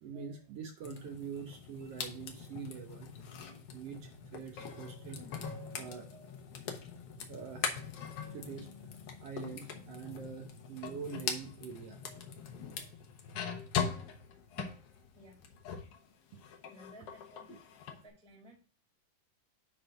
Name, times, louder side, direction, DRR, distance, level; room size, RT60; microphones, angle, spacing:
voice 1, 0.0-3.1 3.7-5.4 5.7-6.4 6.9-7.0 7.3-7.8 8.3-8.7 9.2-12.3 12.8-12.9 14.6-14.7 16.3-16.4 17.5-17.6, right 6 dB, 65° right, 4 dB, 1.8 m, -45 dB
sound 1, 0.8-16.0 16.3-18.0, left 6 dB, 60° left, 1.8 m, -42 dB
voice 2, 16.7-17.5 17.9-18.6, equal, 5° left, -1 dB, 0.9 m, -56 dB
10.0 x 3.9 x 3.9 m, 0.38 s
omnidirectional pair, 3.4 m